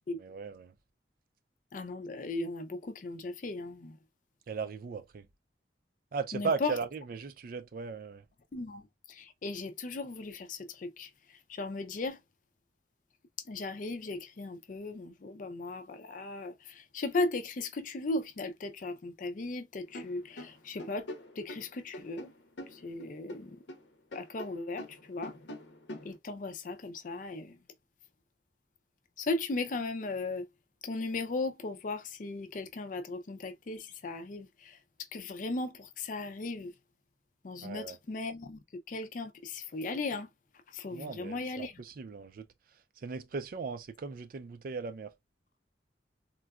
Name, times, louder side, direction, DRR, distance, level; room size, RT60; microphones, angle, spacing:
voice 1, 0.2-0.7 4.5-5.3 6.1-8.2 37.6-38.0 40.9-42.5 43.0-45.1, right 5 dB, 50° right, 0.4 m, -37 dB
voice 2, 1.7-4.0 6.3-6.7 8.5-8.8 9.1-11.1 11.5-12.2 13.5-21.1 21.4-22.3 22.7-23.6 24.1-25.3 26.0-27.6 29.2-30.5 30.8-34.8 35.1-36.7 37.4-38.6 38.9-40.3 40.7-41.7, left 2 dB, 45° left, 0.4 m, -37 dB
sound 1, 19.9-23.8 24.1-26.2, left 1 dB, 80° left, 0.7 m, -45 dB
3.7 x 2.3 x 2.3 m
head